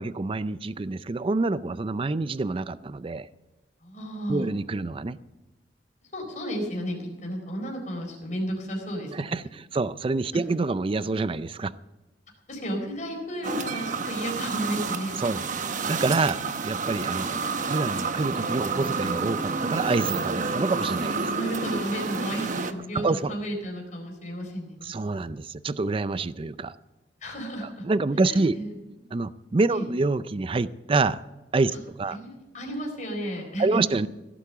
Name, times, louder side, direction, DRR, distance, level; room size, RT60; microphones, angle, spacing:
voice 1, 0.0-3.3 4.3-5.2 9.1-11.7 15.2-15.5 15.8-21.3 22.9-23.3 24.8-26.8 27.6-28.6 29.1-31.2 31.5-31.7 32.0-32.2 33.6-34.1, right 3 dB, 30° right, 15 dB, 0.4 m, -27 dB
voice 2, 3.8-4.5 6.1-9.3 12.5-15.2 21.3-24.8 27.2-27.8 28.2-28.7 29.7-29.8 32.1-33.8, equal, 45° left, 0 dB, 4.3 m, -33 dB
sound 1, 13.4-22.7, right 4 dB, 45° right, 0.9 m, -29 dB
16.5 x 8.5 x 6.9 m, 1.1 s
head